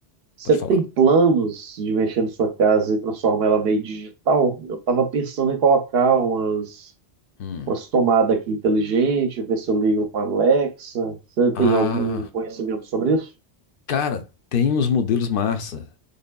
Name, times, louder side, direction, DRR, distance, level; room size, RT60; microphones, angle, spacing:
voice 1, 0.4-6.9 7.7-13.3, right 4 dB, 60° right, 0.8 m, -21 dB
voice 2, 7.4-7.7 11.5-12.3 13.9-14.2 14.5-16.0, left 7 dB, 60° left, 0.6 m, -24 dB
4.0 x 3.2 x 2.2 m
omnidirectional pair, 1.2 m